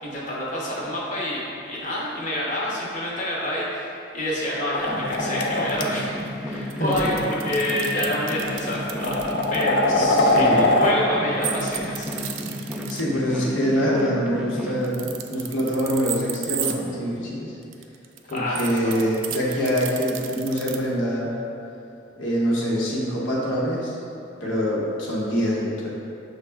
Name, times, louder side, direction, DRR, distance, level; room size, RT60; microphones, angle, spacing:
voice 1, 0.0-6.1 6.4-12.2 18.3-19.0, left 1 dB, 40° left, -5 dB, 0.7 m, -28 dB
sound 1, 4.7-5.8 6.9-7.1 8.0-8.1 8.7-10.9, left 2 dB, 60° left, 0.4 m, -21 dB
sound 2, 4.9-14.8, left 1 dB, 5° right, 0.4 m, -33 dB
sound 3, 6.7-9.6 11.4-13.0 14.8-16.8 17.6-20.8, right 10 dB, 85° right, 0.3 m, -33 dB
voice 2, 9.9-10.6 12.9-17.6 18.3-21.3 22.2-24.0 24.4-25.9, equal, 80° left, -5 dB, 0.9 m, -25 dB
6.1 x 2.1 x 3.3 m, 2.8 s
head